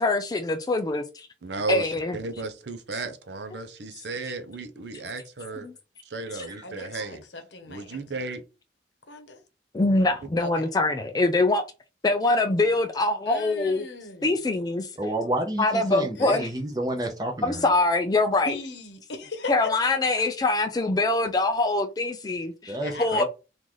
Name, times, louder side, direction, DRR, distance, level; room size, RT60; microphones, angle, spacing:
voice 1, 0.0-1.3 1.7-2.2 5.6-5.7 6.3-6.5 9.7-11.6 12.0-13.9 14.2-14.9 15.6-16.5 17.4-18.6 19.5-23.2, left 2 dB, 20° left, 0.3 m, -24 dB
voice 2, 1.4-5.7 6.0-7.2 7.7-8.4, right 3 dB, 75° right, 0.7 m, -34 dB
voice 3, 6.6-8.3 9.1-9.4 10.4-10.7 13.3-14.4 16.2-16.4 18.4-19.5 22.8-23.2, left 3 dB, 75° left, 0.8 m, -39 dB
voice 4, 15.0-17.6 22.7-23.2, right 1 dB, 20° right, 0.7 m, -29 dB
3.8 x 2.5 x 3.0 m
head